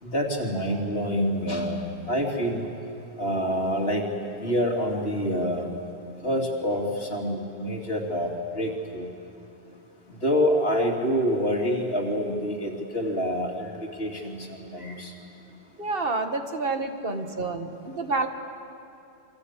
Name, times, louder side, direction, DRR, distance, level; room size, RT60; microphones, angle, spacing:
voice 1, 0.0-2.6 3.2-4.1 4.4-5.7 6.2-9.1 10.2-13.7 14.0-15.1, equal, 65° left, 1 dB, 3.2 m, -27 dB
voice 2, 15.8-18.3, right 3 dB, 60° right, 6 dB, 1.8 m, -28 dB
27.5 x 23.5 x 8.3 m, 2.6 s
omnidirectional pair, 1.1 m